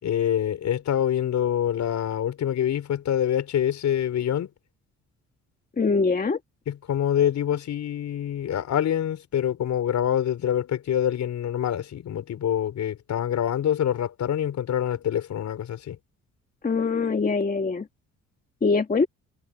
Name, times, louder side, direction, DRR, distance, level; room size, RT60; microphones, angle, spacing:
voice 1, 0.0-4.5 6.7-16.0, left 10 dB, 65° left, 4.8 m, -25 dB
voice 2, 5.8-6.4 16.6-17.9 18.6-19.1, left 4 dB, 30° left, 1.8 m, -23 dB
cardioid pair, 90°, 30 cm